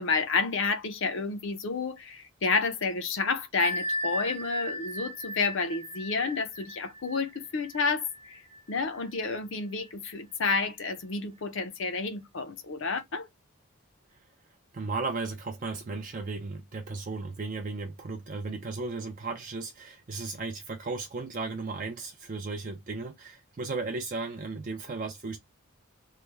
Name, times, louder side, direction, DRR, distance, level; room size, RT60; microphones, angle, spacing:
voice 1, 0.0-8.4 8.7-13.3, left 4 dB, 60° left, 0.6 m, -30 dB
Bell, 3.6-9.0, equal, 80° right, 0.6 m, -36 dB
voice 2, 14.7-25.4, right 3 dB, 35° right, 0.4 m, -35 dB
3.2 x 2.1 x 3.2 m
head